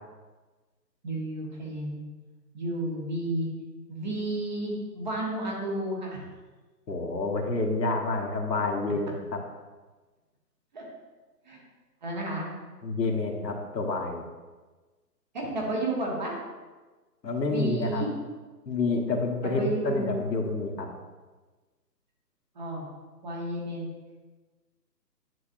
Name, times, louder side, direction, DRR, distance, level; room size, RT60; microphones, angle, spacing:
voice 1, 1.0-2.1 2.5-3.5 3.9-6.2 10.7-10.8 11.5-11.6 12.0-12.5 15.3-16.3 17.4-18.1 19.4-20.1 22.5-22.8 23.2-23.9, right 1 dB, 25° right, -2 dB, 1.2 m, -32 dB
voice 2, 6.9-9.2 12.8-14.2 17.2-18.0 18.7-20.9, left 3 dB, 80° left, 1 dB, 1.5 m, -28 dB
9.6 x 5.8 x 2.6 m, 1.3 s
hypercardioid pair, 160°, 50 cm